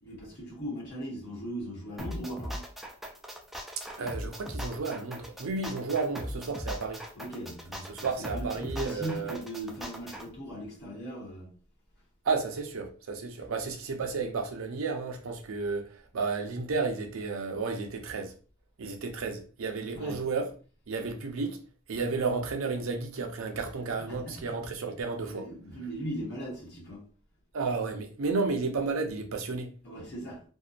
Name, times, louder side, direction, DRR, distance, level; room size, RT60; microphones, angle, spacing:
voice 1, 0.0-2.6 7.1-11.5 19.9-20.2 24.1-24.4 25.3-27.0 29.8-30.4, equal, 55° left, 1.0 m, -39 dB
sound 1, 2.0-10.3, equal, ahead, 0.3 m, -39 dB
voice 2, 3.8-7.0 7.9-9.4 12.2-18.3 18.8-20.5 20.9-21.6 21.9-25.5 27.5-29.7, right 4 dB, 75° right, 0.5 m, -32 dB
2.7 x 2.1 x 2.4 m
head